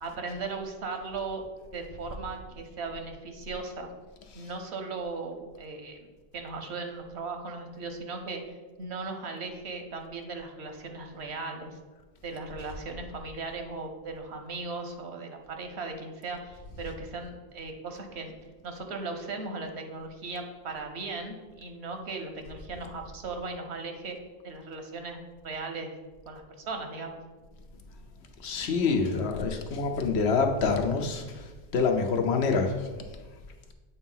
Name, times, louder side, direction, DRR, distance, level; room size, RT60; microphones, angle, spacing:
voice 1, 0.0-1.4 1.7-3.9 4.3-6.1 6.3-11.8 12.2-18.3 18.6-24.2 24.4-25.2 25.4-25.9 26.3-27.2, right 3 dB, 80° right, 5 dB, 1.1 m, -37 dB
voice 2, 28.4-31.4 31.7-32.9, left 4 dB, 80° left, 4 dB, 1.0 m, -26 dB
8.1 x 2.8 x 5.5 m, 1.3 s
omnidirectional pair, 1.1 m